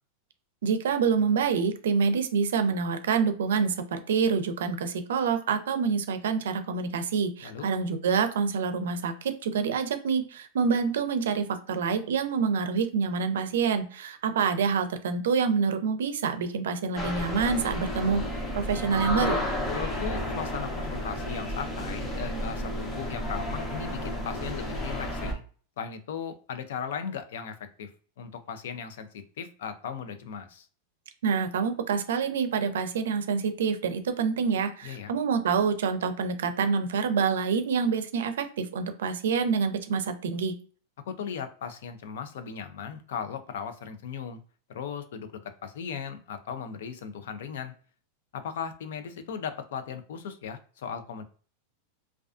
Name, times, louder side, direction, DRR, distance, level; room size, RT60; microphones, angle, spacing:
voice 1, 0.6-18.2 18.5-19.4 31.2-40.5, right 6 dB, 90° right, 9 dB, 0.4 m, -27 dB
sound 1, 17.0-25.3, left 1 dB, 25° left, 0.6 m, -32 dB
voice 2, 19.7-25.4 25.8-27.9 28.2-30.7 34.8-35.1 41.1-44.4 44.7-45.3 45.6-47.7 48.3-51.2, left 7 dB, 80° left, 9 dB, 0.4 m, -37 dB
2.3 x 2.2 x 2.4 m, 0.43 s
supercardioid pair, 140°, 0 cm